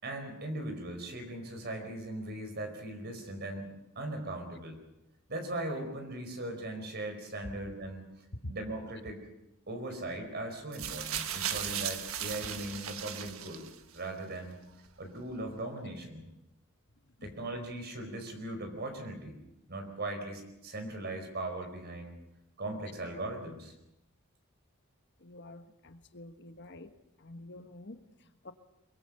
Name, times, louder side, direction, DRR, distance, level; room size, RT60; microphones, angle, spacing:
voice 1, 0.0-4.8 5.3-8.1 8.5-9.2 9.7-13.7 13.9-14.6 15.0-16.3 17.2-19.4 19.7-22.1 22.6-23.7, right 1 dB, 50° right, 5 dB, 4.9 m, -39 dB
looking in bushes, 10.7-14.0 14.9-15.0, right 9 dB, 90° right, 1.5 m, -37 dB
voice 2, 25.2-26.9 27.2-28.5, left 1 dB, 55° left, 9 dB, 1.4 m, -47 dB
23.0 x 22.0 x 6.7 m, 0.87 s
head